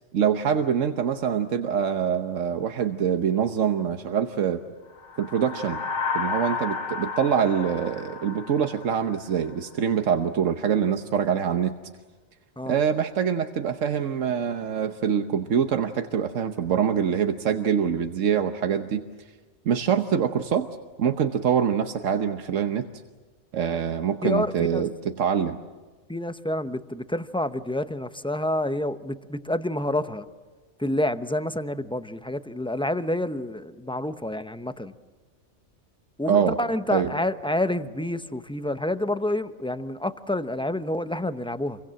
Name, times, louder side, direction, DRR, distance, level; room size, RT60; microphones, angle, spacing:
voice 1, 0.1-4.6 5.2-5.8 6.1-11.8 12.7-19.0 19.6-20.7 21.0-22.9 23.5-25.6 36.3-36.5 36.9-37.1, right 7 dB, 90° right, 7 dB, 1.3 m, -24 dB
sound 1, 5.0-9.5, left 4 dB, 75° left, 1.6 m, -32 dB
voice 2, 24.2-24.9 26.1-30.3 30.8-34.9 36.2-41.8, left 1 dB, 5° left, 11 dB, 0.7 m, -28 dB
28.0 x 23.5 x 7.6 m, 1.4 s
omnidirectional pair, 1.3 m